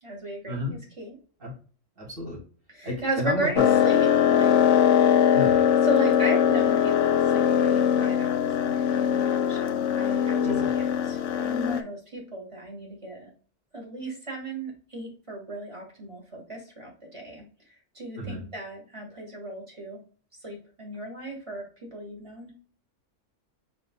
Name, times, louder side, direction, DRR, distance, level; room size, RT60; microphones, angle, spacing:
voice 1, 0.0-1.2 2.7-4.6 5.0-13.3 13.7-17.4 17.9-20.0 20.4-21.7 21.9-22.5, right 1 dB, 25° right, -1 dB, 1.9 m, -35 dB
voice 2, 2.0-2.4 2.9-3.6 5.3-5.5 10.4-10.7 18.2-18.4, left 1 dB, 45° right, -2 dB, 2.5 m, -31 dB
sound 1, 3.6-11.8, left 9 dB, 75° left, 0.9 m, -21 dB
5.1 x 4.5 x 2.2 m, 0.40 s
omnidirectional pair, 1.3 m